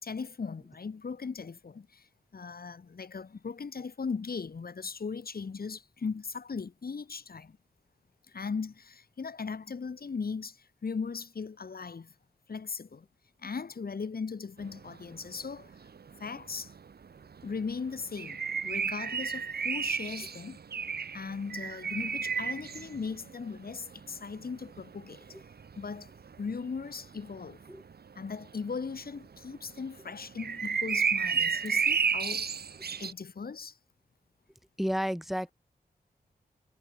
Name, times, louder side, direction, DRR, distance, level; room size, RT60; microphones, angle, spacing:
voice 1, 0.0-2.1 2.3-7.6 8.3-12.1 12.5-13.1 13.4-15.7 16.2-16.7 17.4-20.6 21.1-25.3 25.8-26.1 26.4-27.6 28.2-32.5 33.0-33.8, left 5 dB, 65° left, 4.2 m, -38 dB
sound 1, 14.6-15.2 15.4-15.5 15.7-28.0 28.4-28.9 29.2-29.3 29.5-33.1, right 6 dB, 75° right, 1.6 m, -32 dB
voice 2, 34.8-35.5, equal, ahead, 2.7 m, -31 dB
wide cardioid pair, 70°, 17 cm